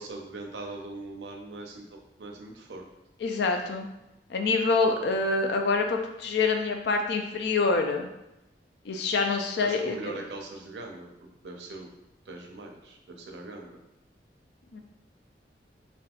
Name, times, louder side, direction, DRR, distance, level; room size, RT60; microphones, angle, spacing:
voice 1, 0.0-2.9 9.2-9.3 9.6-11.1 11.4-11.9 12.3-13.8, right 2 dB, 75° right, 2 dB, 0.5 m, -41 dB
voice 2, 3.2-3.9 4.3-8.1 8.9-10.2 14.7-14.8, left 4 dB, 65° left, 4 dB, 0.4 m, -26 dB
3.4 x 2.6 x 2.4 m, 0.90 s
head